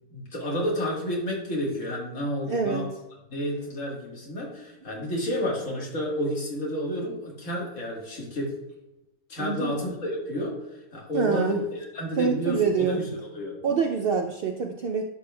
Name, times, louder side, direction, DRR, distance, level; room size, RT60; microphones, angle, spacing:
voice 1, 0.1-2.9 3.3-8.5 9.3-10.5 10.9-11.6 11.9-13.1 13.3-13.6, equal, 60° left, -2 dB, 1.9 m, -30 dB
voice 2, 2.5-2.9 9.4-9.7 11.1-11.6 12.2-13.0 13.6-15.0, right 5 dB, 75° right, 3 dB, 0.5 m, -25 dB
10.5 x 5.3 x 2.2 m, 0.96 s
omnidirectional pair, 1.5 m